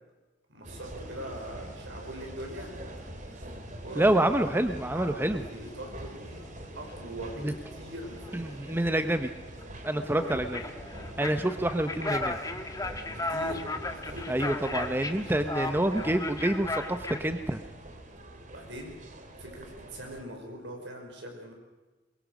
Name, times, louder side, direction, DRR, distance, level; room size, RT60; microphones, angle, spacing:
voice 1, 0.5-2.8 3.3-3.4 3.8-4.1 4.9-6.5 6.8-7.4 7.7-8.7 10.3-10.4 13.1-15.7 18.5-18.9 19.4-21.5, equal, 70° right, 2 dB, 5.6 m, -42 dB
sound 1, 0.6-20.2, right 1 dB, 45° right, 2.5 m, -44 dB
sound 2, 0.9-1.7 2.0-2.5 2.8-17.2, left 2 dB, 20° left, 1.4 m, -37 dB
voice 2, 4.0-5.4 7.4-7.5 8.3-9.3 9.8-10.6 11.2-12.4 14.3-17.6, right 1 dB, 10° right, 8 dB, 0.8 m, -27 dB
22.5 x 22.5 x 6.4 m, 1.2 s
head